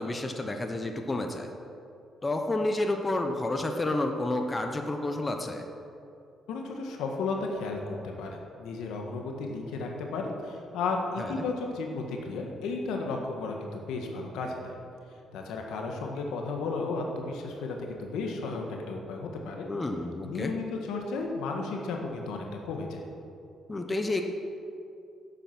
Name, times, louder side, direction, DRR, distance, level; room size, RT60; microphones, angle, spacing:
voice 1, 0.0-1.5 2.2-5.6 11.2-11.4 19.7-20.5 23.7-24.2, left 2 dB, 25° left, 5 dB, 1.0 m, -30 dB
voice 2, 6.5-14.7 15.3-19.7 20.2-23.0, left 3 dB, 90° left, 2 dB, 1.7 m, -34 dB
11.0 x 8.5 x 6.2 m, 2.5 s
cardioid pair, 90°, 0 cm